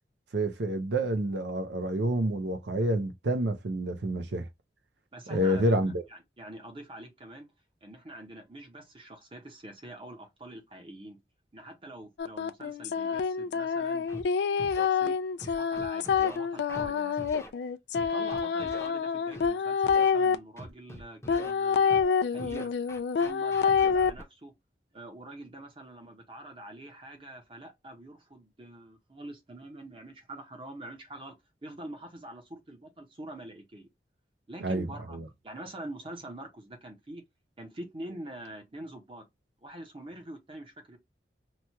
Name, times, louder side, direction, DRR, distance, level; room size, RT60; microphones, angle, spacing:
voice 1, 0.3-4.5 5.3-6.0 34.6-35.2, right 1 dB, 85° right, 0.6 m, -28 dB
voice 2, 5.1-5.6 6.1-7.5 7.8-11.2 11.5-14.1 14.7-15.2 15.6-17.3 18.0-22.7 23.2-24.5 24.9-33.9 34.5-35.2 35.4-37.2 37.6-39.2 39.6-41.0, right 1 dB, 30° right, 0.8 m, -45 dB
sound 1, 12.2-20.3 21.3-24.1, left 6 dB, 75° left, 0.3 m, -27 dB
Scratching (performance technique), 14.1-14.2 14.6-14.9 15.4-16.4 16.7-16.9 17.2-17.5 17.9-18.9 19.3-19.5 19.8-20.1 20.6-21.5 21.9-22.1 22.4-24.2, equal, 15° left, 0.7 m, -43 dB
3.0 x 2.3 x 2.8 m
head